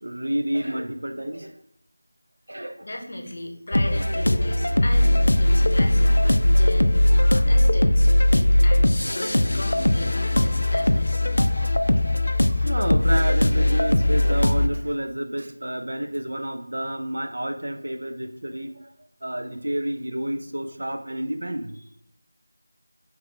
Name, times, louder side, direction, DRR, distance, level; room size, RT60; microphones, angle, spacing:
voice 1, 0.0-1.6 2.5-2.9 11.6-11.8 12.5-18.9 19.2-21.8, right 1 dB, 70° right, 6 dB, 0.5 m, -30 dB
voice 2, 2.8-11.2 12.4-12.7, left 1 dB, 45° left, 2 dB, 0.8 m, -37 dB
sound 1, 3.7-14.7, left 1 dB, 70° left, 0.4 m, -19 dB
3.9 x 3.1 x 3.2 m, 0.71 s
figure-of-eight pair, 175°, 0 cm